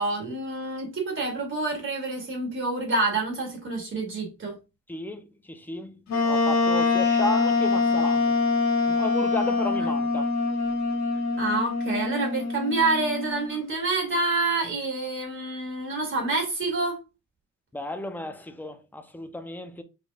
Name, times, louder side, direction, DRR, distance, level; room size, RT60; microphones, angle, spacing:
voice 1, 0.0-4.6 11.4-17.0, right 3 dB, 40° right, 2.6 m, -27 dB
voice 2, 4.9-8.3 8.9-10.3 17.7-19.8, left 1 dB, 5° left, 0.5 m, -34 dB
Wind instrument woodwind instrument, 6.1-13.5, left 4 dB, 60° left, 1.5 m, -24 dB
5.1 x 4.3 x 2.4 m
cardioid pair, 130°, 31 cm